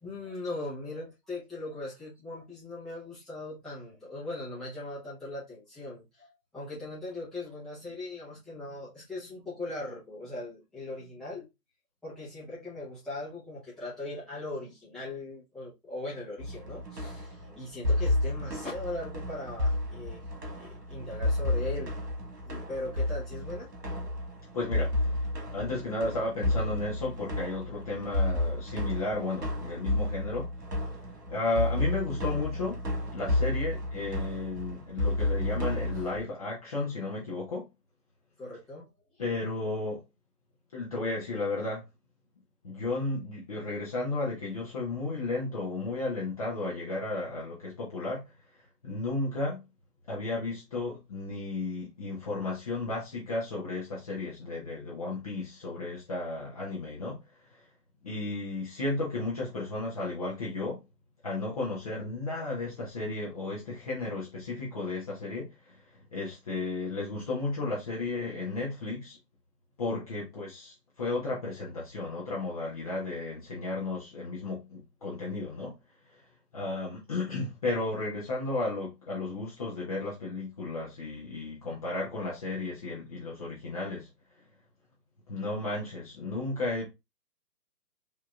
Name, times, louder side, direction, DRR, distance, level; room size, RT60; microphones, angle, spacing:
voice 1, 0.0-11.5 12.0-20.2 20.5-21.9 22.4-23.7 31.1-31.2 38.4-39.2, left 2 dB, ahead, 0.9 m, -39 dB
sound 1, 16.4-36.2, left 1 dB, 75° right, 1.6 m, -31 dB
voice 2, 24.5-25.2 25.5-30.5 31.3-32.8 33.1-37.7 39.2-40.0 40.7-41.8 42.6-49.6 50.1-57.7 58.0-60.8 61.2-69.2 69.8-75.7 76.0-76.3 76.5-84.1 84.4-84.5 85.3-86.8, left 2 dB, 25° left, 0.6 m, -34 dB
4.8 x 2.8 x 2.4 m
figure-of-eight pair, 140°, 48 cm